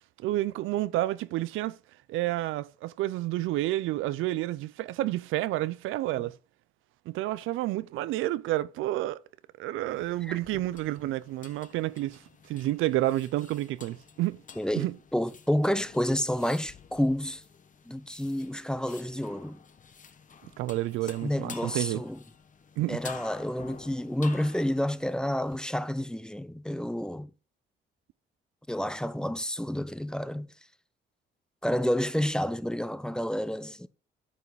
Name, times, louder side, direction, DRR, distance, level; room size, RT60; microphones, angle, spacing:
voice 1, 0.2-1.8 2.1-6.3 7.1-9.2 9.6-12.2 12.5-14.4 14.8-14.9 20.4-22.0 22.8-23.0, right 16 dB, 90° right, 0.5 m, -30 dB
sound 1, 9.9-25.6, left 6 dB, 40° left, 1.0 m, -50 dB
voice 2, 14.6-17.4 17.9-19.6 21.2-22.2 22.9-27.3 28.7-30.5 31.6-33.9, equal, 5° left, 0.6 m, -29 dB
9.5 x 5.7 x 4.7 m
cardioid pair, 90°, 20 cm